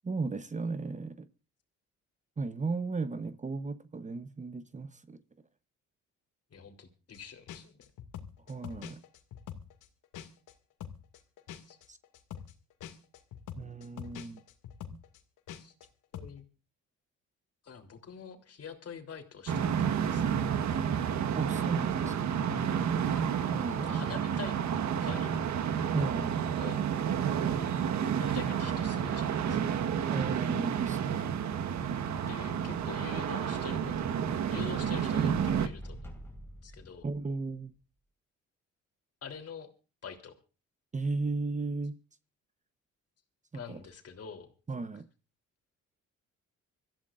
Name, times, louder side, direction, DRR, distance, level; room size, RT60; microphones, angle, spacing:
voice 1, 0.0-1.3 2.4-5.2 8.5-9.0 11.9-12.0 13.6-14.4 21.4-22.4 23.5-24.0 25.9-26.3 30.1-31.1 37.0-37.8 40.9-41.9 43.5-43.8 44.7-45.1, right 3 dB, 25° right, 1.0 m, -35 dB
voice 2, 6.5-7.8 11.6-11.8 15.5-15.7 16.1-16.4 17.6-20.4 23.8-24.6 25.0-25.3 26.5-26.9 28.2-29.8 32.3-34.1 34.5-36.2 36.6-37.1 39.2-39.7 40.0-40.3 43.5-44.5, left 6 dB, 55° left, 3.4 m, -45 dB
sound 1, 7.1-7.2 7.5-10.5 10.8-15.9 16.1-16.4, left 9 dB, 90° left, 2.2 m, -44 dB
sound 2, 19.5-35.7, right 8 dB, 70° right, 1.4 m, -30 dB
sound 3, 32.1-37.6, equal, 10° left, 4.7 m, -48 dB
26.0 x 15.0 x 2.5 m
cardioid pair, 90°, 30 cm